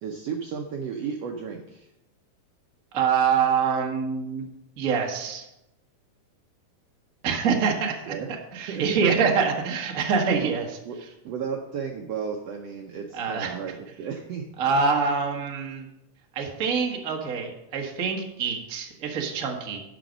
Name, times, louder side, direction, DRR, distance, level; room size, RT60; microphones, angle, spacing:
voice 1, 0.0-1.9 8.1-8.3 8.7-9.1 10.4-10.5 10.8-11.0 11.2-14.4, right 6 dB, 75° right, 2 dB, 1.5 m, -33 dB
voice 2, 2.9-4.4 4.8-5.5 7.2-8.1 8.5-10.8 13.1-13.5 14.6-15.9 16.3-19.8, right 5 dB, 55° right, 1 dB, 0.9 m, -25 dB
11.0 x 5.9 x 5.1 m, 0.90 s
omnidirectional pair, 3.7 m